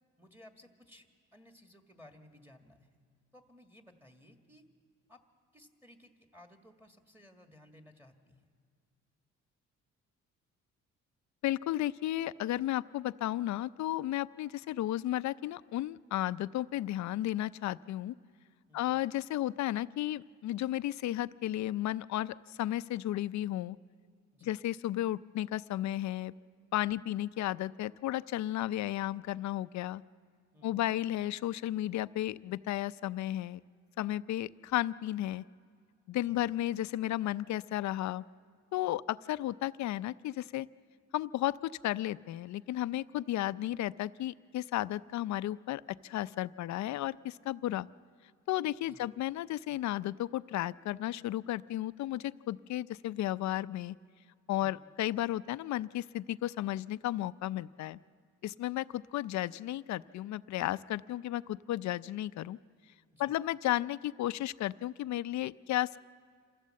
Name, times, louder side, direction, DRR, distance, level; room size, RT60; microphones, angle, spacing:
voice 1, 0.2-3.0 3.3-4.7 5.1-5.2 5.5-8.5 18.7-19.0 24.3-24.6 30.5-30.8 36.1-36.4 48.8-49.1 54.6-54.9 63.1-63.4, left 1 dB, 5° right, 4 dB, 1.7 m, -58 dB
voice 2, 11.4-18.1 18.7-23.8 24.4-26.3 26.7-30.0 30.6-33.6 34.0-35.4 36.1-38.2 38.7-40.7 41.1-47.9 48.5-53.9 54.5-58.0 58.4-62.6 63.2-66.0, left 14 dB, 65° left, 16 dB, 0.5 m, -33 dB
27.0 x 15.5 x 7.6 m, 2.1 s
cardioid pair, 90°, 30 cm